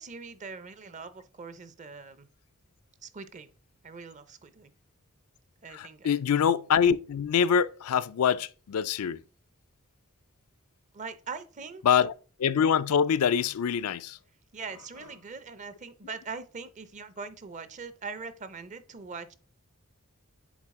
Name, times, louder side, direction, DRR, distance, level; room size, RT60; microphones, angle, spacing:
voice 1, 0.0-2.3 3.0-3.5 3.8-4.7 5.6-6.2 10.9-11.8 14.5-19.3, right 5 dB, 35° right, 0.6 m, -42 dB
voice 2, 5.7-9.2 11.8-12.1 12.4-14.2, left 7 dB, 85° left, 0.4 m, -25 dB
7.2 x 4.1 x 3.6 m
head